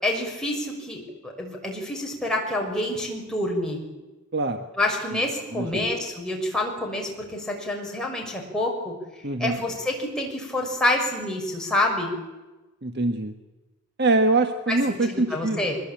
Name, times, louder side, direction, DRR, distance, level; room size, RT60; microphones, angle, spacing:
voice 1, 0.0-3.8 4.8-8.9 9.4-12.1 14.7-14.8 15.1-15.8, left 1 dB, 5° left, -1 dB, 6.3 m, -27 dB
voice 2, 4.3-4.6 5.1-5.2 5.5-5.9 9.2-9.6 12.8-13.3 14.0-15.7, right 2 dB, 50° right, 7 dB, 1.5 m, -24 dB
24.5 x 21.5 x 8.9 m, 1.1 s
head